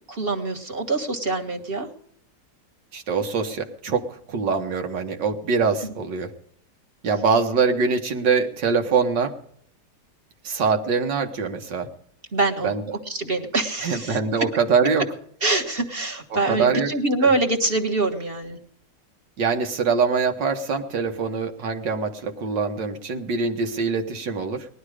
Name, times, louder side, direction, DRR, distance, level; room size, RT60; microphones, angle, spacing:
voice 1, 0.1-1.9 5.8-5.9 12.3-12.7 13.0-14.4 15.4-18.6, right 2 dB, 35° right, 2 dB, 1.6 m, -25 dB
voice 2, 2.9-6.3 7.0-9.3 10.4-11.9 12.6-12.8 13.8-15.0 16.5-16.9 17.2-17.3 19.4-24.7, right 5 dB, 80° right, 4 dB, 2.0 m, -23 dB
19.5 x 12.0 x 5.0 m, 0.63 s
omnidirectional pair, 1.9 m